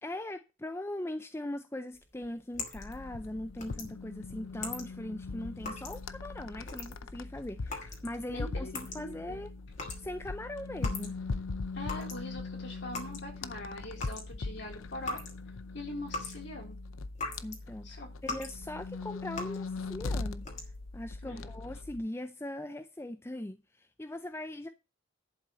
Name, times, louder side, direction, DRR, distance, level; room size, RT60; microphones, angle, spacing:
voice 1, 0.0-9.5 10.0-11.2 17.4-20.5 20.9-24.7, left 1 dB, 10° left, 0.5 m, -40 dB
sound 1, 1.9-11.4 11.7-17.6 18.0-18.6 18.9-19.8 20.3-21.0, left 3 dB, 35° left, 2.6 m, -42 dB
sound 2, 2.7-22.0, left 3 dB, 80° left, 0.7 m, -40 dB
voice 2, 8.3-9.4 11.7-15.2 15.7-16.8 17.8-18.1 21.2-21.5, left 1 dB, 55° left, 3.8 m, -43 dB
11.0 x 4.2 x 7.5 m
head